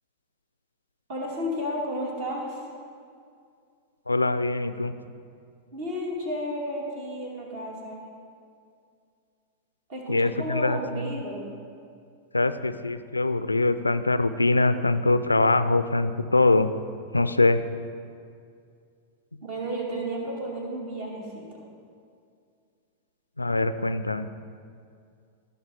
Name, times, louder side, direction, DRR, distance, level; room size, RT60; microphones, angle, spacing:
voice 1, 1.1-2.7 5.7-8.1 9.9-11.4 19.4-21.6, equal, 50° right, -1 dB, 2.3 m, -32 dB
voice 2, 4.1-4.9 10.1-11.2 12.3-16.7 17.1-17.6 23.4-24.3, left 2 dB, 80° left, 12 dB, 0.4 m, -23 dB
15.5 x 5.4 x 4.7 m, 2.3 s
figure-of-eight pair, 90°, 0 cm